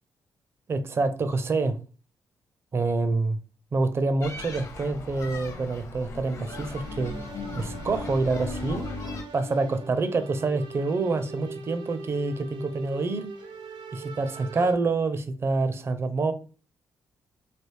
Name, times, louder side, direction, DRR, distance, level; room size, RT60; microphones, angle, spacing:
voice 1, 0.7-1.8 2.7-3.4 3.7-7.1 7.5-8.9 9.3-13.3 13.9-16.3, right 3 dB, 30° right, 0.4 m, -27 dB
sound 1, 4.2-9.2, left 2 dB, 40° left, 0.7 m, -37 dB
sound 2, 6.5-14.7, right 2 dB, 80° right, 0.6 m, -41 dB
3.2 x 2.4 x 3.1 m
cardioid pair, 130°, 8 cm